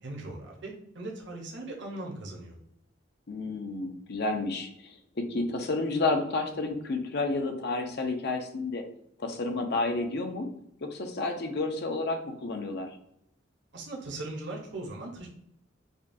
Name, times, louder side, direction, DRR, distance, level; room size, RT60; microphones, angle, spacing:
voice 1, 0.0-2.6 13.7-15.3, right 2 dB, 60° right, -1 dB, 0.9 m, -39 dB
voice 2, 3.3-8.8 9.2-10.5 10.8-12.9, left 3 dB, 55° left, 5 dB, 0.6 m, -31 dB
5.1 x 2.3 x 2.6 m, 0.74 s
head